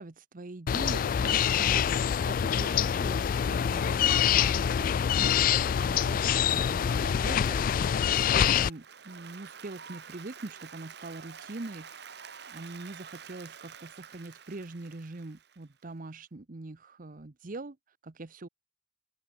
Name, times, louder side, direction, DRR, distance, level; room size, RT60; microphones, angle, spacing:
voice 1, 0.0-12.1 12.5-18.5, right 2 dB, 45° right, 0.8 m, -43 dB
sound 1, 0.7-8.7, left 8 dB, 50° left, 0.3 m, -25 dB
Applause, 8.6-15.8, right 7 dB, 65° right, 2.1 m, -48 dB
open air
head